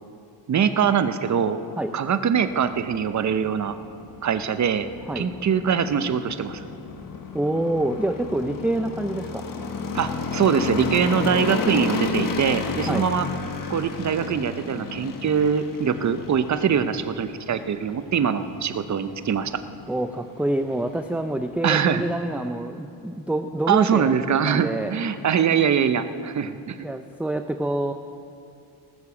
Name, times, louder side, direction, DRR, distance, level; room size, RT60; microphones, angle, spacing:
voice 1, 0.5-1.6 1.9-3.7 4.2-4.9 5.2-6.6 9.9-13.3 13.7-19.5 21.6-22.0 23.7-26.8, right 7 dB, 40° right, 11 dB, 0.8 m, -23 dB
sound 1, 2.3-21.7, left 4 dB, 50° left, 1.3 m, -33 dB
voice 2, 7.3-9.4 12.9-13.0 19.9-24.9 26.8-27.9, right 1 dB, 5° right, 7 dB, 0.4 m, -26 dB
18.5 x 6.9 x 7.1 m, 2.6 s
cardioid pair, 85°, 43 cm